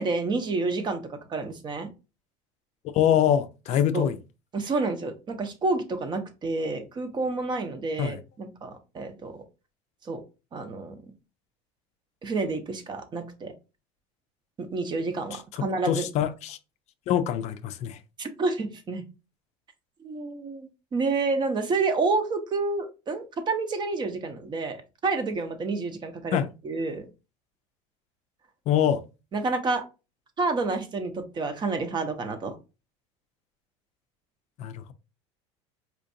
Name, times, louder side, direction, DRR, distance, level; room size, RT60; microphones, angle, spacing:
voice 1, 0.0-1.9 3.9-4.1 4.5-9.3 10.0-10.2 10.5-11.1 12.2-13.5 14.6-16.1 18.2-19.1 20.0-27.1 29.3-29.8 30.4-32.6, right 3 dB, 30° right, 0.7 m, -29 dB
voice 2, 2.9-4.1 8.0-8.1 15.9-16.6 17.1-18.0 26.3-26.5 28.7-29.0 34.6-34.9, left 10 dB, 50° left, 0.4 m, -24 dB
4.4 x 2.5 x 2.6 m
supercardioid pair, 105°, 15 cm